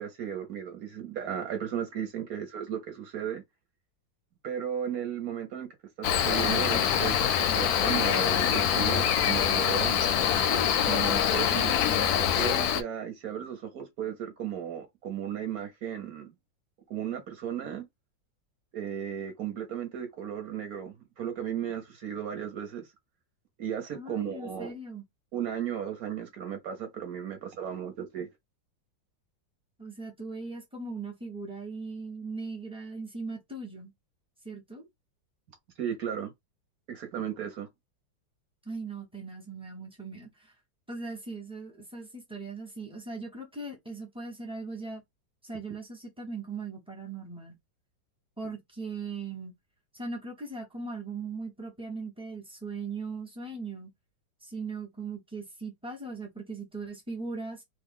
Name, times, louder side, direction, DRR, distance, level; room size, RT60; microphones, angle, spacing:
voice 1, 0.0-3.4 4.4-10.0 10.9-16.3 16.9-17.8 18.7-22.9 23.6-24.7 25.3-28.3 35.8-36.3 36.9-37.7, right 9 dB, 60° right, 1.1 m, -35 dB
Cricket, 6.0-12.8, left 9 dB, 70° left, 0.9 m, -25 dB
voice 2, 11.5-12.1 23.9-25.0 29.8-33.9 34.4-34.9 38.6-40.5 40.9-45.0 45.4-47.6 48.4-49.5 49.9-53.9 54.4-57.6, right 3 dB, 10° right, 0.3 m, -39 dB
3.2 x 2.3 x 3.5 m
omnidirectional pair, 2.1 m